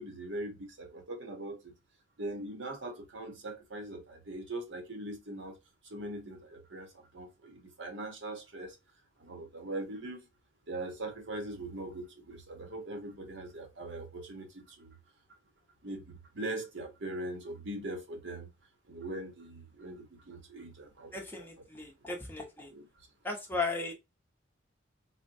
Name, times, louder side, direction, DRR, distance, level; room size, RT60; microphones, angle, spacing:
voice 1, 0.0-1.7 2.2-5.6 5.9-8.8 9.2-10.3 10.7-14.9 15.8-18.5 18.9-21.5 22.7-22.9, right 1 dB, 70° right, 1.0 m, -41 dB
voice 2, 21.1-22.7 23.2-23.9, left 3 dB, 10° left, 0.8 m, -36 dB
4.2 x 2.2 x 2.6 m
head